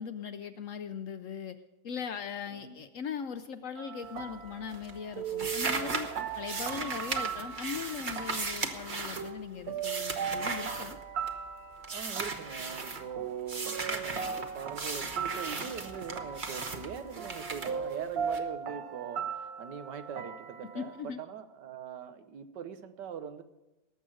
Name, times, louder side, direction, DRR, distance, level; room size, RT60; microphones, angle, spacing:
voice 1, 0.0-1.6 1.8-6.1 6.4-11.0 20.7-21.2, left 7 dB, 65° left, 10 dB, 0.8 m, -39 dB
sound 1, 3.8-21.0, right 7 dB, 65° right, 1.2 m, -39 dB
sound 2, 4.0-4.5 4.7-11.5 11.8-13.0 13.5-18.4, right 3 dB, 35° right, 1.0 m, -37 dB
voice 2, 6.6-7.0 11.9-23.4, right 7 dB, 85° right, 10 dB, 1.6 m, -42 dB
18.5 x 7.4 x 6.3 m, 1.0 s
omnidirectional pair, 1.8 m